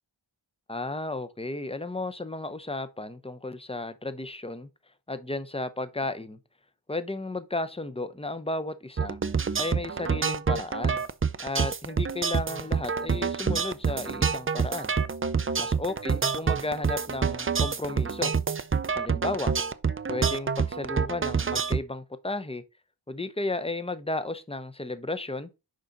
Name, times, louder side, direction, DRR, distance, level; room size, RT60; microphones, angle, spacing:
voice 1, 0.7-4.7 5.1-6.4 6.9-9.2 9.6-11.0 11.4-14.9 15.6-18.3 18.9-19.5 20.1-22.6 23.1-25.5, left 2 dB, 15° left, 0.7 m, -33 dB
sound 1, 9.0-21.8, right 6 dB, 30° right, 0.4 m, -27 dB
6.6 x 4.9 x 3.9 m
wide cardioid pair, 55°, 46 cm